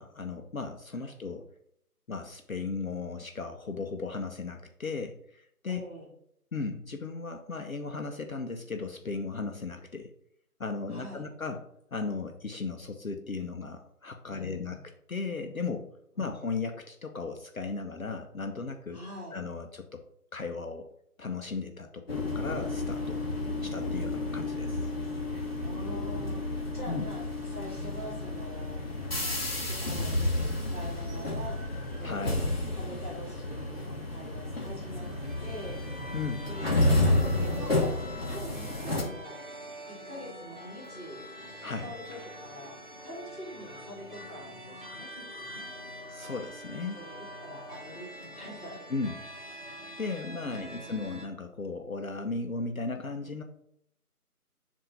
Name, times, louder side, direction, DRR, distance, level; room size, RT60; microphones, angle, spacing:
voice 1, 0.0-1.5 2.1-5.8 6.5-10.1 10.6-11.6 11.9-14.8 15.1-15.9 16.2-19.0 19.3-20.0 20.3-20.9 21.2-23.2 23.6-24.9 26.9-27.0 32.0-32.5 36.1-36.4 41.6-41.9 46.1-47.0 48.9-49.1 50.0-53.4, left 4 dB, 60° left, 5 dB, 0.7 m, -36 dB
voice 2, 5.7-6.1 10.9-11.3 14.2-14.9 16.2-16.5 18.9-19.4 23.4-23.7 25.6-27.2 27.5-28.8 29.2-32.4 32.7-33.8 34.1-35.1 35.4-35.9 36.5-36.8 37.2-37.9 38.3-39.4 39.9-41.2 41.7-42.7 43.0-45.7 46.9-47.1 47.4-48.8, equal, 10° left, -13 dB, 1.6 m, -44 dB
sound 1, 22.1-39.0, left 1 dB, 40° left, 1.4 m, -31 dB
sound 2, 34.5-51.3, equal, 35° right, 0.9 m, -45 dB
7.3 x 2.6 x 5.6 m, 0.73 s
figure-of-eight pair, 170°, 46 cm